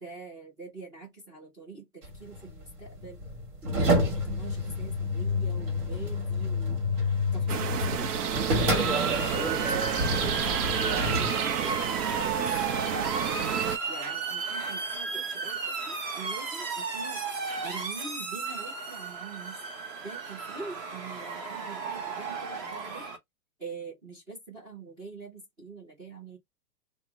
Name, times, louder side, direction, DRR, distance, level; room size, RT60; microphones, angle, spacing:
voice 1, 0.0-3.2 3.6-6.8 7.3-8.2 9.4-10.7 11.2-12.0 12.2-17.2 17.6-19.6 20.0-23.1 23.6-26.4, right 4 dB, 10° right, 0.5 m, -44 dB
sound 1, 2.0-11.3, left 1 dB, 55° right, 1.7 m, -29 dB
sound 2, 7.5-13.8, right 8 dB, 70° right, 0.7 m, -30 dB
Motor vehicle (road) / Siren, 8.7-23.2, right 4 dB, 25° right, 0.9 m, -34 dB
2.7 x 2.1 x 3.4 m
hypercardioid pair, 150°, 47 cm